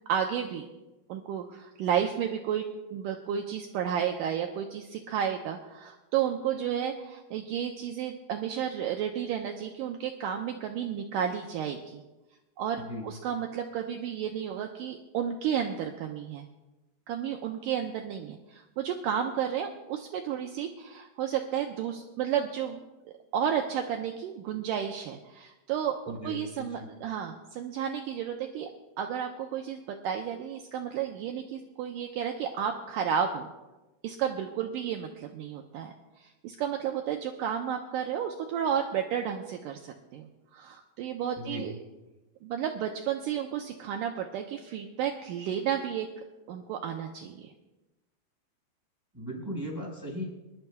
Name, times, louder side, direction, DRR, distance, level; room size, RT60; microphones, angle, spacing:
voice 1, 0.1-0.7 1.1-2.7 2.9-12.0 12.6-16.5 17.1-22.8 23.3-28.7 29.0-33.5 34.0-41.8 42.4-46.1 46.5-47.5, right 8 dB, 85° right, 3 dB, 1.9 m, -32 dB
voice 2, 26.1-26.9 41.4-41.6 49.1-50.2, equal, 5° right, -2 dB, 4.1 m, -37 dB
26.0 x 12.0 x 2.3 m, 1.0 s
omnidirectional pair, 4.5 m